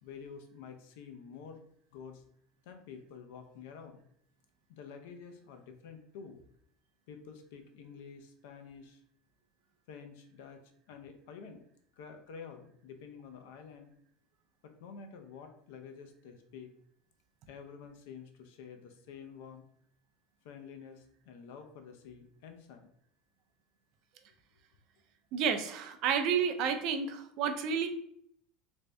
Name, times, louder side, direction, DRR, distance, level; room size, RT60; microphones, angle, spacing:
voice 1, 0.0-1.6 1.9-2.2 2.6-4.0 4.7-6.4 7.1-9.0 9.9-10.6 10.9-11.6 12.0-13.9 14.6-16.7 17.5-19.7 20.4-22.9, left 6 dB, 75° left, 6 dB, 0.6 m, -49 dB
voice 2, 25.3-27.9, right 7 dB, 45° right, 7 dB, 0.4 m, -30 dB
3.2 x 2.6 x 3.3 m, 0.66 s
cardioid pair, 175°, 0 cm